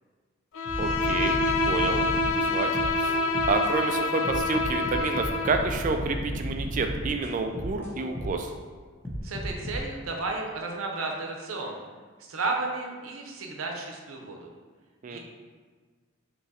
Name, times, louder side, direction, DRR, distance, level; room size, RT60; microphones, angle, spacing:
Bowed string instrument, 0.5-5.7, left 2 dB, 70° left, 0.4 m, -27 dB
sound 1, 0.7-3.7 4.2-8.5 9.0-9.8, equal, 10° left, 0.7 m, -34 dB
voice 1, 0.8-1.4 1.7-2.7 3.0-3.2 3.5-8.5 15.0-15.2, right 3 dB, 40° right, 5 dB, 0.3 m, -29 dB
voice 2, 9.2-11.8 12.2-14.5 15.1-15.2, right 3 dB, 90° right, 1 dB, 0.7 m, -33 dB
3.7 x 3.0 x 4.1 m, 1.5 s
head